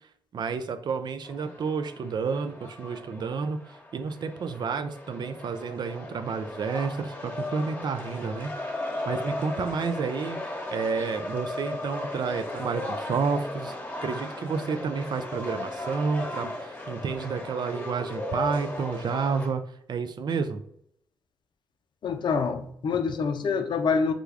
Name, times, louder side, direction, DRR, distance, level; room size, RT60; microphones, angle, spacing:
voice 1, 0.3-3.6 3.9-8.5 9.1-10.4 10.7-13.7 14.0-19.6 19.9-20.6, right 5 dB, 60° right, 10 dB, 0.4 m, -30 dB
sound 1, 1.2-19.5, left 2 dB, 20° left, 1.0 m, -36 dB
voice 2, 22.0-24.1, left 5 dB, 60° left, 8 dB, 0.5 m, -26 dB
3.7 x 2.3 x 3.2 m, 0.72 s
supercardioid pair, 45°, 9 cm